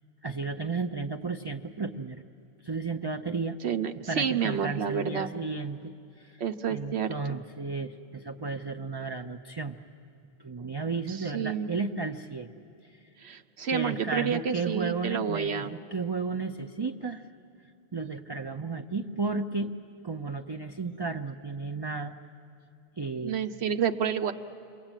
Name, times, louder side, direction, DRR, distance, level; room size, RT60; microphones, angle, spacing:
voice 1, 0.2-2.2 2.6-3.6 4.0-6.4 6.7-9.8 10.4-12.5 12.8-12.9 13.7-17.3 17.9-19.7 20.0-22.2 23.0-23.4, right 4 dB, 30° right, 5 dB, 0.6 m, -33 dB
voice 2, 3.6-5.3 6.4-7.4 10.6-10.7 11.1-11.7 13.2-15.7 23.2-24.3, right 7 dB, 80° right, 7 dB, 1.1 m, -30 dB
28.5 x 23.0 x 9.0 m, 2.5 s
omnidirectional pair, 1.1 m